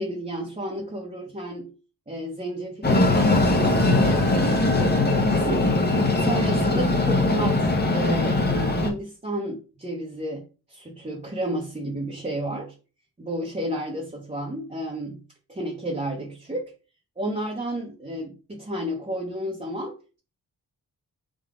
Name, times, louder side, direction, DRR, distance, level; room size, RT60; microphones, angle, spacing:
voice 1, 0.0-1.7 2.1-5.7 6.1-10.4 10.7-12.7 13.2-15.2 15.5-16.7 17.2-20.2, right 1 dB, 15° right, -3 dB, 1.2 m, -32 dB
Train, 2.8-8.9, left 2 dB, 25° left, 1.2 m, -21 dB
3.9 x 2.7 x 3.7 m, 0.34 s
cardioid pair, 50°, 40 cm